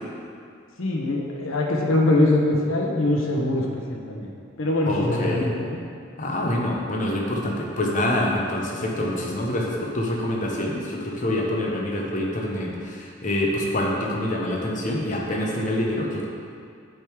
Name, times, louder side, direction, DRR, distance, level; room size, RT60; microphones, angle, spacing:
voice 1, 0.8-4.3 4.6-5.8, left 1 dB, 80° left, -1 dB, 0.8 m, -23 dB
voice 2, 4.9-5.5 6.2-16.2, left 1 dB, 40° left, -2 dB, 0.9 m, -26 dB
7.7 x 3.6 x 4.7 m, 2.3 s
head